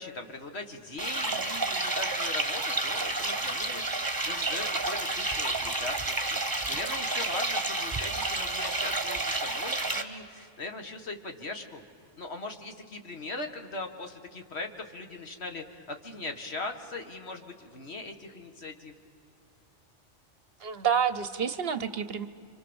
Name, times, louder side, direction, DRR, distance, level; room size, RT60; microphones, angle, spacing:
voice 1, 0.0-6.4 6.7-11.8 12.2-18.9, left 2 dB, 60° left, 5 dB, 2.0 m, -40 dB
sound 1, 1.0-10.0, right 2 dB, 15° right, 1.4 m, -30 dB
voice 2, 20.6-22.3, right 7 dB, 55° right, 13 dB, 1.0 m, -28 dB
30.0 x 25.0 x 7.1 m, 2.5 s
omnidirectional pair, 1.3 m